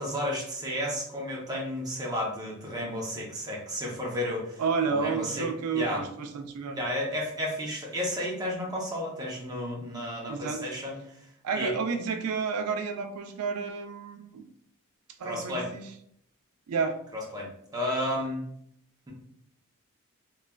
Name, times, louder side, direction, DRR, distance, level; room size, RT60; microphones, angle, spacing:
voice 1, 0.0-5.5 5.7-6.1 6.7-11.3 11.5-11.7 15.2-15.7 17.1-18.4, left 1 dB, 15° right, -3 dB, 0.6 m, -32 dB
voice 2, 4.6-6.8 10.3-10.6 11.4-14.4 15.2-15.9 16.7-17.0, right 5 dB, 80° right, 7 dB, 0.4 m, -31 dB
3.1 x 2.3 x 2.2 m, 0.69 s
head